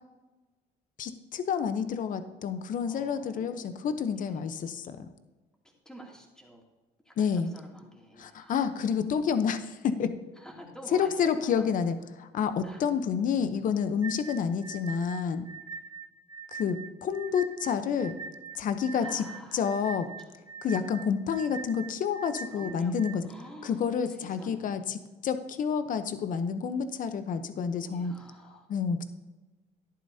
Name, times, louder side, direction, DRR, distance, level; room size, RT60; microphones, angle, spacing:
voice 1, 1.0-5.1 7.2-7.5 8.2-10.1 10.9-15.5 16.5-18.2 18.5-19.2 19.5-20.1 20.6-23.3 23.6-28.1 28.7-29.1, left 7 dB, 50° left, 10 dB, 0.8 m, -29 dB
voice 2, 2.8-3.9 4.2-4.5 5.8-6.6 7.0-9.0 10.4-11.1 11.4-11.7 12.6-12.8 18.9-20.0 22.5-22.9 23.2-25.0 27.9-28.7, equal, 5° left, -2 dB, 2.6 m, -49 dB
sound 1, 14.0-23.2, right 5 dB, 20° right, 0.9 m, -43 dB
13.5 x 11.0 x 2.8 m, 1.2 s
cardioid pair, 110°, 17 cm